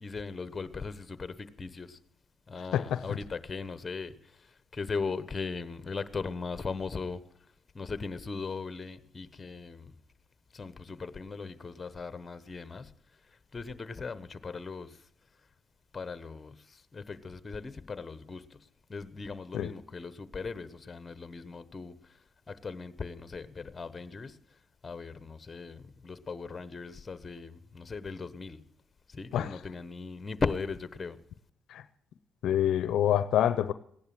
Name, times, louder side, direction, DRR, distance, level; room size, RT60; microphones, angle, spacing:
voice 1, 0.0-2.0 2.5-7.2 7.7-9.9 10.5-12.9 13.5-15.0 15.9-18.6 18.9-22.0 22.5-24.4 24.8-28.6 29.1-31.2, left 4 dB, 30° left, 1.1 m, -38 dB
voice 2, 2.7-3.2 19.5-19.7 29.3-29.6 31.7-31.8 32.4-33.7, left 10 dB, 75° left, 0.6 m, -27 dB
16.0 x 10.5 x 7.7 m
cardioid pair, 90°, 0 cm